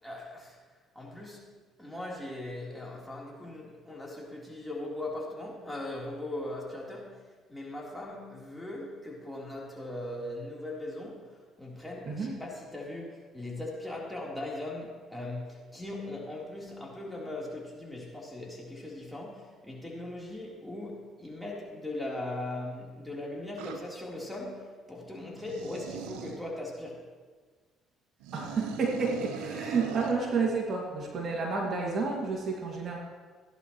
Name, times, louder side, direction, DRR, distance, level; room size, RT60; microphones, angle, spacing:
voice 1, 0.0-0.6 1.0-1.5 1.8-27.0, left 1 dB, 5° left, -4 dB, 3.7 m, -39 dB
sound 1, 23.6-23.8 25.4-26.4 28.2-30.2, right 8 dB, 85° right, 1.0 m, -40 dB
voice 2, 28.3-33.0, right 4 dB, 50° right, -1 dB, 2.3 m, -30 dB
16.5 x 11.0 x 3.2 m, 1.5 s
supercardioid pair, 70°, 0 cm